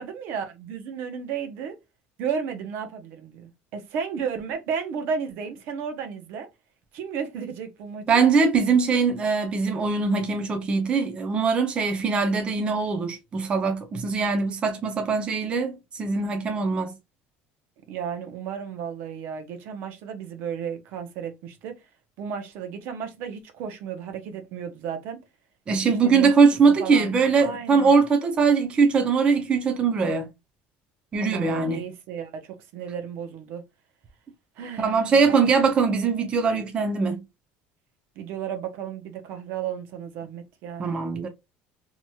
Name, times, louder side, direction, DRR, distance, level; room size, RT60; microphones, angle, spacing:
voice 1, 0.0-1.8 2.2-6.5 6.9-8.2 17.9-21.8 22.2-25.2 25.8-26.3 26.7-27.9 31.1-33.6 34.6-35.4 38.2-40.9, right 7 dB, 60° right, 0.7 m, -33 dB
voice 2, 8.1-16.9 25.7-30.3 31.1-31.8 34.8-37.2 40.8-41.3, right 5 dB, 25° right, 0.5 m, -22 dB
2.9 x 2.8 x 2.2 m
cardioid pair, 155°, 4 cm